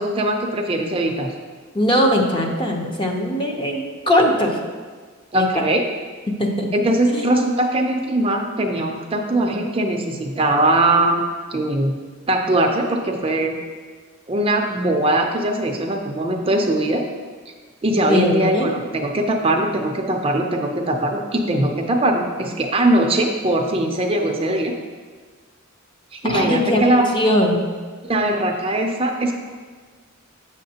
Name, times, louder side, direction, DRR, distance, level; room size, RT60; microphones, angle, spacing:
voice 1, 0.0-1.3 5.3-5.8 6.7-11.2 11.5-12.0 12.3-13.6 14.3-17.0 17.8-24.7 26.1-27.1 28.1-29.3, right 1 dB, 25° right, 2 dB, 0.5 m, -20 dB
voice 2, 1.7-4.6 5.3-5.5 6.4-6.7 7.1-7.3 18.1-18.7 26.2-26.8 27.1-27.6, left 1 dB, 25° left, 1 dB, 0.7 m, -20 dB
8.3 x 6.4 x 2.8 m, 1.5 s
head